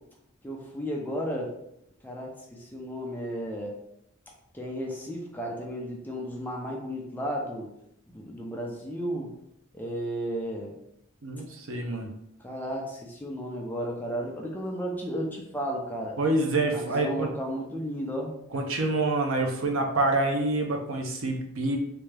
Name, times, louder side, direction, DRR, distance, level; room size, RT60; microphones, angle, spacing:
voice 1, 0.4-1.5 2.0-2.3 2.6-3.7 4.5-7.7 8.1-9.3 9.7-10.7 12.4-16.1 16.7-18.3, equal, 10° left, -1 dB, 0.5 m, -33 dB
voice 2, 11.2-12.1 16.2-17.3 18.5-21.8, right 2 dB, 65° right, 3 dB, 0.6 m, -27 dB
3.4 x 2.7 x 3.3 m, 0.79 s
head